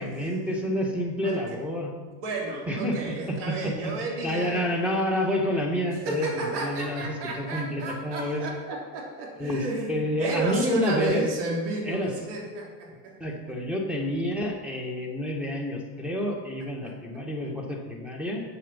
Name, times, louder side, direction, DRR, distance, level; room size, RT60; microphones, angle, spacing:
voice 1, 0.0-1.9 2.7-3.0 3.3-3.9 4.2-8.5 9.4-11.2 11.8-12.1 13.2-18.4, left 1 dB, 5° right, 0 dB, 2.0 m, -29 dB
voice 2, 1.2-1.6 2.2-4.6 6.0-13.1 16.8-16.9, right 3 dB, 65° right, -1 dB, 3.0 m, -32 dB
7.9 x 7.6 x 5.7 m, 1.4 s
supercardioid pair, 100°, 46 cm